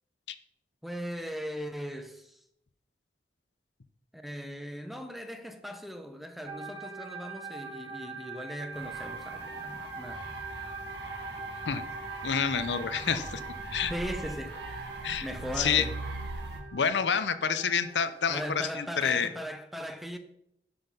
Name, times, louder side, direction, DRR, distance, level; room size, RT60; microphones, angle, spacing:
voice 1, 0.8-2.4 4.1-10.2 13.9-14.6 15.2-16.0 18.3-20.2, equal, ahead, 0.8 m, -38 dB
sound 1, 6.5-18.6, right 3 dB, 20° right, 1.1 m, -43 dB
sound 2, 8.7-16.6, right 2 dB, 70° right, 1.9 m, -41 dB
voice 2, 12.2-13.4 13.7-13.9 15.0-15.3 15.6-15.8 16.7-19.3, left 7 dB, 85° left, 0.7 m, -28 dB
11.0 x 5.5 x 5.7 m
head